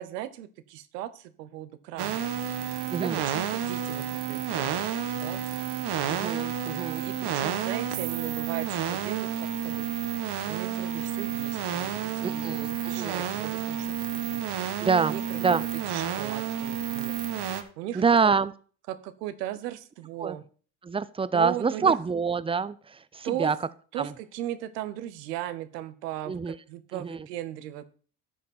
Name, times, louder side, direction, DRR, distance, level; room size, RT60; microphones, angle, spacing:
voice 1, 0.0-2.3 2.9-4.8 5.1-5.4 6.9-9.8 10.5-14.0 14.3-14.4 15.0-17.2 17.8-18.3 18.9-20.4 21.3-21.9 23.2-23.5 23.9-27.8, right 13 dB, 85° right, 13 dB, 0.9 m, -37 dB
sound 1, 2.0-17.6, right 9 dB, 55° right, 1.3 m, -31 dB
voice 2, 2.9-3.2 6.1-7.0 12.2-13.2 14.8-15.2 15.4-15.6 17.9-18.5 20.2-20.4 20.8-23.6 24.0-24.1 26.3-26.6 26.9-27.2, right 5 dB, 10° right, 17 dB, 0.5 m, -26 dB
13.5 x 5.2 x 4.3 m, 0.42 s
hypercardioid pair, 60°, 47 cm